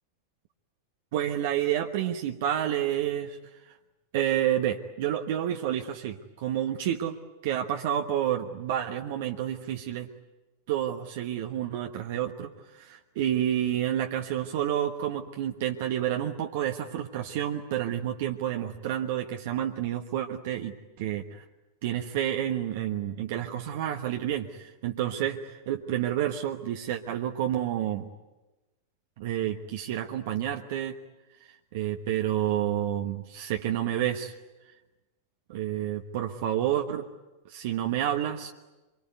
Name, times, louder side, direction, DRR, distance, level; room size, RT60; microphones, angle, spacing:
voice 1, 1.1-3.4 3.6-3.7 4.1-7.2 7.4-10.1 10.7-21.4 21.8-28.1 29.2-30.9 31.4-34.3 35.5-37.1 37.5-38.5, right 11 dB, 50° right, 3 dB, 1.3 m, -29 dB
26.0 x 23.5 x 9.5 m, 1.1 s
figure-of-eight pair, 90°, 0 cm